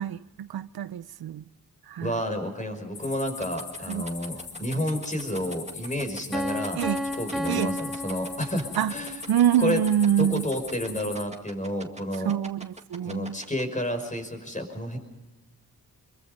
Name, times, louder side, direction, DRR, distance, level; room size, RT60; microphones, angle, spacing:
voice 1, 0.0-1.4 1.9-2.1 3.9-4.0 6.8-7.0 7.5-7.8 8.8-8.9 9.3-10.4 12.2-13.4, right 10 dB, 75° right, 0.6 m, -25 dB
voice 2, 2.0-6.8 7.2-9.2 9.6-9.8 10.2-12.3 13.0-15.0, equal, 20° left, 5.5 m, -30 dB
sound 1, 2.9-11.2, left 5 dB, 80° left, 2.8 m, -41 dB
sound 2, 3.4-13.6, right 2 dB, 20° right, 2.0 m, -42 dB
Piano, 6.3-9.1, left 1 dB, ahead, 1.8 m, -32 dB
26.0 x 23.0 x 5.3 m
wide cardioid pair, 90°, 37 cm